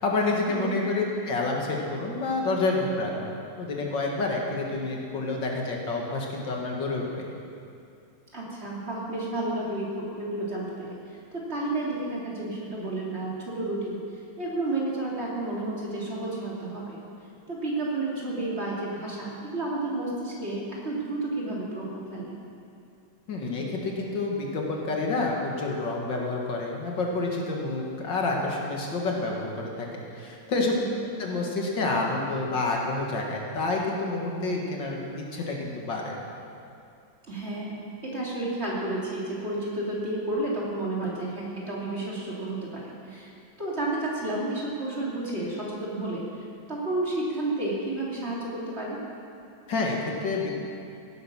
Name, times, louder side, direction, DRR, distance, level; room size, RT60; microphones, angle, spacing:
voice 1, 0.0-3.3 3.6-7.3 23.3-29.9 30.1-30.8 31.2-35.0 35.3-36.2 49.7-50.5, left 3 dB, 70° left, -1 dB, 2.3 m, -28 dB
voice 2, 8.3-17.0 17.5-22.4 30.6-30.9 37.3-43.3 43.6-49.0, right 2 dB, 35° right, -5 dB, 2.9 m, -31 dB
16.0 x 9.4 x 6.2 m, 2.6 s
omnidirectional pair, 2.1 m